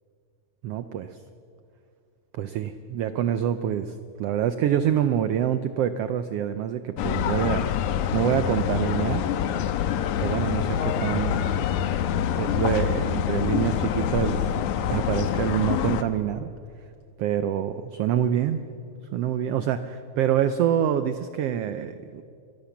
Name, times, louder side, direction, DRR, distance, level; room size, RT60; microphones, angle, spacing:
voice 1, 0.6-1.2 2.3-9.2 10.2-11.4 12.4-14.5 14.9-16.5 17.2-18.6 19.1-22.2, right 10 dB, 85° right, 11 dB, 1.3 m, -26 dB
sound 1, 7.0-16.0, left 9 dB, 85° left, 2.3 m, -26 dB
23.5 x 16.0 x 7.2 m, 2.5 s
omnidirectional pair, 3.5 m